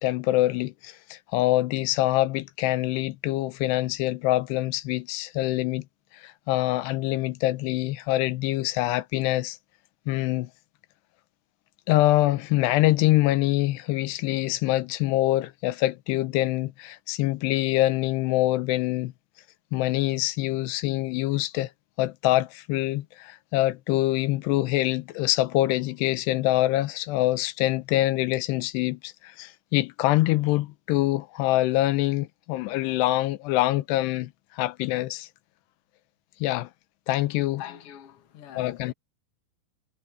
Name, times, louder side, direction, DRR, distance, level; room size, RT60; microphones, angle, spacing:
voice 1, 0.0-5.8 6.1-9.6 10.1-10.5 11.9-19.1 19.7-21.7 22.0-35.3 36.4-36.7 37.1-37.6 38.6-38.9, left 16 dB, 90° left, 2.9 m, -25 dB
voice 2, 37.6-38.9, left 10 dB, 45° left, 2.1 m, -43 dB
omnidirectional pair, 4.7 m